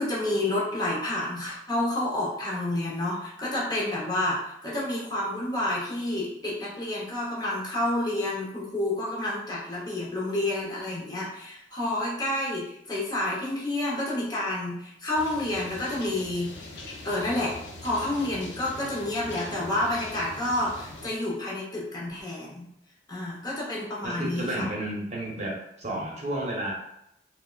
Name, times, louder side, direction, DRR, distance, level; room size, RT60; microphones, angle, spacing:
voice 1, 0.0-16.5 17.0-22.7 23.1-24.7, left 1 dB, 25° left, -5 dB, 0.7 m, -29 dB
sound 1, 15.1-21.1, left 2 dB, 75° left, 0.5 m, -42 dB
voice 2, 24.0-26.7, right 1 dB, 40° right, -3 dB, 0.8 m, -32 dB
3.4 x 2.1 x 2.3 m, 0.80 s
head